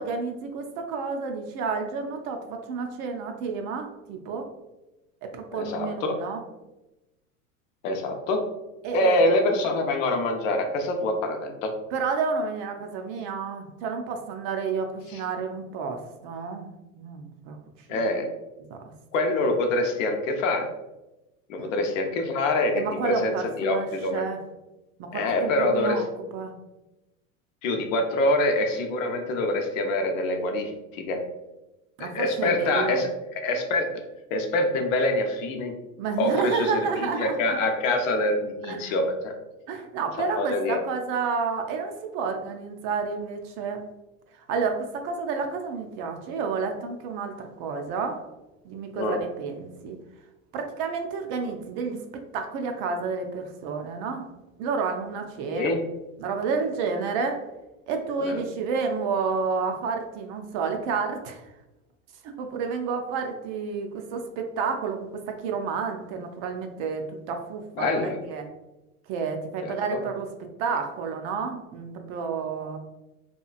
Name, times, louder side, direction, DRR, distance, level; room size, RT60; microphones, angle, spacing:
voice 1, 0.0-4.5 5.2-6.4 8.8-9.2 11.9-17.6 17.9-18.1 21.6-21.7 22.7-24.4 25.0-26.0 26.3-26.5 32.0-33.0 36.0-37.4 38.7-38.9 39.7-43.8 44.3-48.2 48.6-50.0 50.5-52.0 52.3-54.3 54.6-55.7 56.2-57.4 57.9-61.5 62.2-68.5 69.1-70.3 70.6-72.8, right 5 dB, 45° right, 4 dB, 0.4 m, -30 dB
voice 2, 5.6-6.2 7.8-8.4 8.9-11.7 15.1-15.2 17.9-18.3 19.1-20.7 21.5-23.3 23.6-24.2 25.1-26.0 27.6-31.2 32.0-33.1 33.3-33.9 34.3-35.8 36.2-39.3 40.2-40.8 48.9-49.2 55.5-55.8 58.2-58.4 67.8-68.2 69.6-70.0, left 2 dB, 65° left, 4 dB, 0.7 m, -25 dB
2.9 x 2.4 x 2.3 m, 1.0 s
hypercardioid pair, 95°, 42 cm